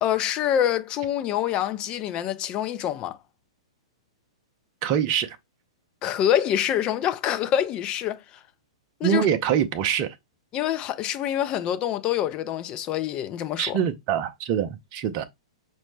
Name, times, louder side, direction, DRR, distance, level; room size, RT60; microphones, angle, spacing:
voice 1, 0.0-3.2 6.0-8.2 9.0-9.2 10.5-13.8, left 10 dB, 30° left, 0.5 m, -26 dB
voice 2, 4.8-5.4 9.0-10.2 13.6-15.3, right 9 dB, 40° right, 0.5 m, -24 dB
5.7 x 2.1 x 3.2 m
figure-of-eight pair, 110°, 3 cm